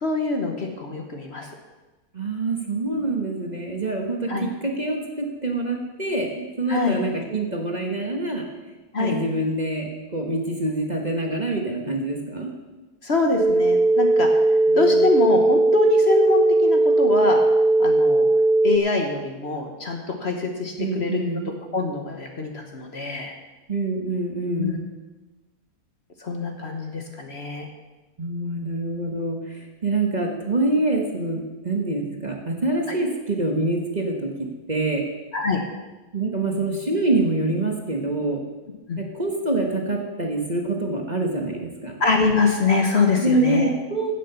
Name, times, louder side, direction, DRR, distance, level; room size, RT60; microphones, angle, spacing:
voice 1, 0.0-1.5 4.3-4.5 6.7-7.0 8.9-9.1 13.0-14.3 14.7-17.4 17.8-18.3 18.6-21.2 21.7-23.3 24.6-24.8 26.2-27.7 32.9-33.0 35.3-35.6 38.9-39.0 42.0-43.7, left 3 dB, 45° left, 3 dB, 1.4 m, -24 dB
voice 2, 2.1-8.4 9.0-12.5 14.7-15.2 20.8-21.5 23.7-24.8 28.2-35.0 36.1-38.4 39.0-42.0 43.2-44.1, right 2 dB, 30° right, 1 dB, 1.4 m, -26 dB
sound 1, 13.4-18.8, right 2 dB, 50° right, 0.6 m, -18 dB
16.0 x 6.8 x 5.6 m, 1.2 s
omnidirectional pair, 1.7 m